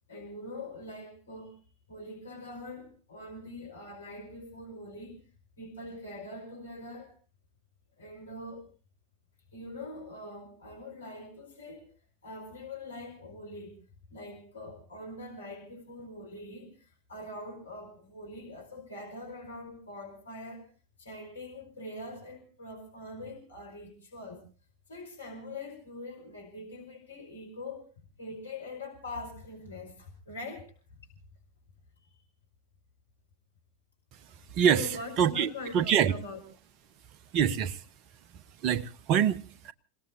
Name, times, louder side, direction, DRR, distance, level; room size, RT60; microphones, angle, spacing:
voice 1, 0.1-1.6 1.9-5.2 5.6-7.1 8.0-8.7 9.5-11.9 12.2-13.8 14.1-20.7 21.0-24.5 24.9-27.8 28.2-31.0 32.0-32.2 34.7-36.4, left 2 dB, 75° left, 5.2 m, -43 dB
voice 2, 34.5-34.9 35.2-36.1 37.3-37.8 38.6-39.7, right 8 dB, 40° right, 1.0 m, -25 dB
28.5 x 17.5 x 2.7 m
figure-of-eight pair, 90°, 0 cm